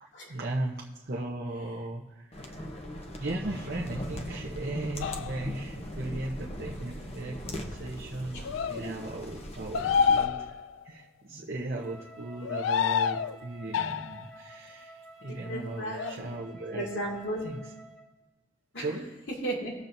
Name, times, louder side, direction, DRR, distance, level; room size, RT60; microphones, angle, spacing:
voice 1, 0.0-2.7 3.2-10.5 10.8-16.9 17.4-17.6 18.8-19.1, right 2 dB, 55° right, -3 dB, 0.9 m, -37 dB
sound 1, 2.3-10.3, equal, 35° left, 1.0 m, -40 dB
sound 2, 5.0-5.5 8.4-8.8 9.7-10.8 12.4-13.4 13.7-14.3 15.9-16.2, left 6 dB, 80° left, 0.3 m, -28 dB
voice 2, 8.3-9.2 9.7-9.9 15.2-16.3 16.7-17.5 18.7-18.9 19.3-19.7, right 1 dB, 65° left, -3 dB, 2.5 m, -36 dB
Wind instrument woodwind instrument, 11.7-18.1, right 1 dB, 5° left, 1.2 m, -51 dB
20.5 x 7.2 x 2.7 m, 1.1 s
head